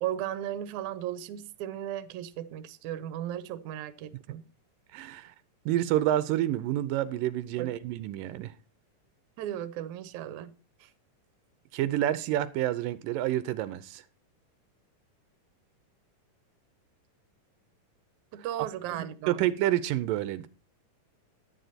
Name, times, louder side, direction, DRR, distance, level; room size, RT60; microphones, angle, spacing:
voice 1, 0.0-4.4 7.5-7.7 9.4-10.5 10.8-10.9 18.3-19.5, right 11 dB, 70° right, 2.1 m, -36 dB
voice 2, 4.9-5.3 5.7-8.5 11.7-14.0 18.9-20.5, right 13 dB, 85° right, 2.4 m, -28 dB
11.0 x 9.2 x 4.1 m
omnidirectional pair, 3.9 m